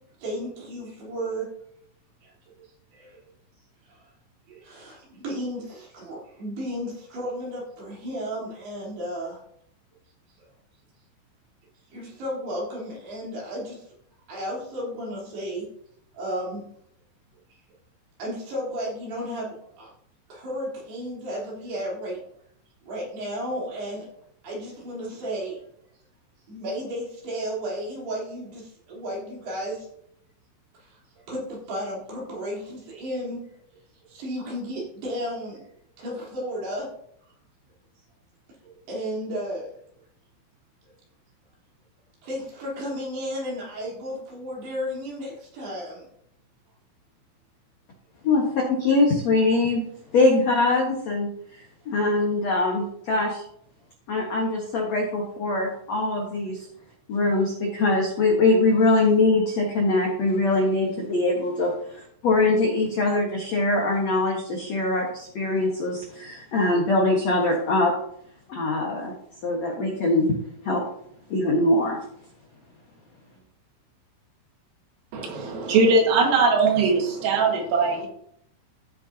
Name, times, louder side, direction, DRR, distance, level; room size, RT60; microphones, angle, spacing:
voice 1, 0.2-1.5 2.2-2.3 2.9-3.2 3.9-4.1 4.5-9.4 10.4-10.5 11.9-13.9 14.3-15.7 16.1-16.6 18.2-19.9 20.3-22.2 22.8-24.1 24.4-25.6 26.5-29.9 30.8-33.4 34.0-35.6 36.0-36.9 38.6-39.7 42.2-46.1, equal, 55° right, -4 dB, 5.6 m, -33 dB
voice 2, 48.2-49.8 50.1-53.4 54.1-56.6 57.1-67.9 68.5-69.1 69.4-70.3 70.6-70.8 71.3-72.0, left 2 dB, 80° left, -1 dB, 1.5 m, -23 dB
voice 3, 75.1-78.1, right 4 dB, 85° right, 1 dB, 4.5 m, -20 dB
15.0 x 7.8 x 2.9 m, 0.68 s
omnidirectional pair, 5.7 m